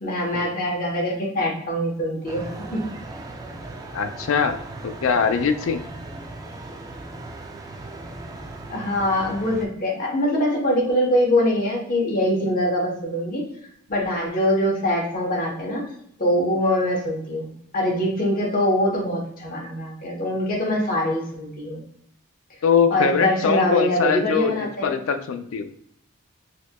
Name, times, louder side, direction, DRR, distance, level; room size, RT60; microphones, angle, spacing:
voice 1, 0.0-2.9 8.7-13.4 13.9-15.8 16.2-21.8 22.9-24.9, left 1 dB, 40° left, -2 dB, 1.0 m, -23 dB
sound 1, 2.3-9.7, right 2 dB, 15° right, 0.4 m, -38 dB
voice 2, 3.9-4.6 4.8-5.8 22.6-25.7, left 6 dB, 65° left, 9 dB, 0.4 m, -22 dB
4.2 x 2.8 x 2.2 m, 0.72 s
head